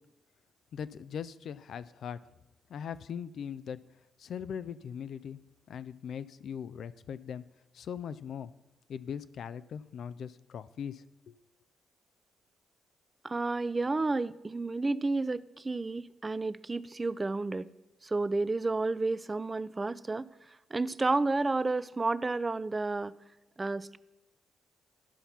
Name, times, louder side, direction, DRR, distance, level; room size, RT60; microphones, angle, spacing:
voice 1, 0.7-2.2 2.7-3.8 4.2-5.4 5.7-7.4 7.7-8.5 8.9-11.4, left 8 dB, 65° left, 15 dB, 0.4 m, -40 dB
voice 2, 13.2-17.7 18.0-23.2 23.6-24.0, right 3 dB, 30° right, 17 dB, 0.4 m, -31 dB
12.5 x 5.5 x 5.8 m, 1.0 s
hypercardioid pair, 45°, 0 cm